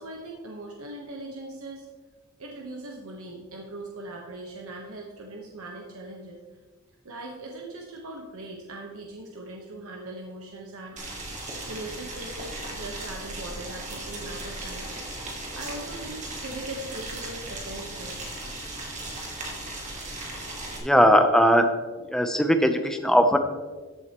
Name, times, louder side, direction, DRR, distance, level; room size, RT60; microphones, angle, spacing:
voice 1, 0.0-1.9 2.4-6.4 7.0-11.0 11.7-14.9 15.4-18.2, right 2 dB, 75° right, 0 dB, 1.1 m, -40 dB
Boiling, 11.0-20.8, right 2 dB, 35° right, 1.8 m, -37 dB
voice 2, 20.8-21.7 22.0-23.4, equal, ahead, 6 dB, 0.6 m, -19 dB
14.0 x 7.7 x 3.0 m, 1.4 s
head